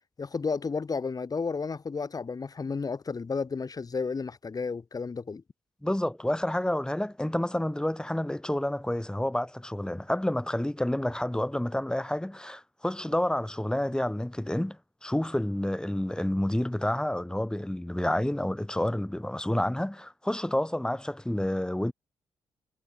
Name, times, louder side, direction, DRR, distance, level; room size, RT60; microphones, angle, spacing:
voice 1, 0.2-5.4, left 4 dB, 45° left, 5.2 m, -32 dB
voice 2, 5.8-21.9, left 1 dB, 10° left, 7.1 m, -29 dB
hypercardioid pair, 40°, 9 cm